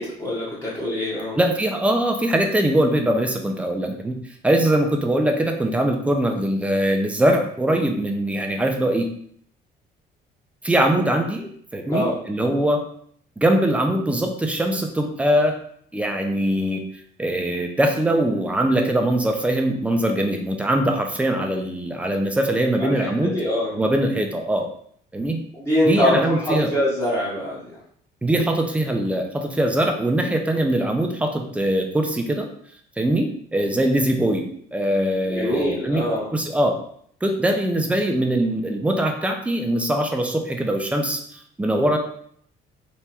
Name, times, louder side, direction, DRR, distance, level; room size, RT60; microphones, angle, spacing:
voice 1, 0.0-1.4 11.9-12.2 22.8-23.7 25.5-27.8 35.3-36.3, left 1 dB, 15° left, -7 dB, 1.0 m, -24 dB
voice 2, 1.3-4.2 4.4-9.1 10.6-12.8 13.4-15.6 15.9-16.8 17.2-23.4 23.7-24.7 25.1-25.4 25.9-26.7 28.2-32.5 33.0-34.5 34.7-36.0 36.3-36.7 37.2-42.0, right 1 dB, 5° right, 3 dB, 0.5 m, -22 dB
3.4 x 3.0 x 4.3 m, 0.64 s
cardioid pair, 160°, 19 cm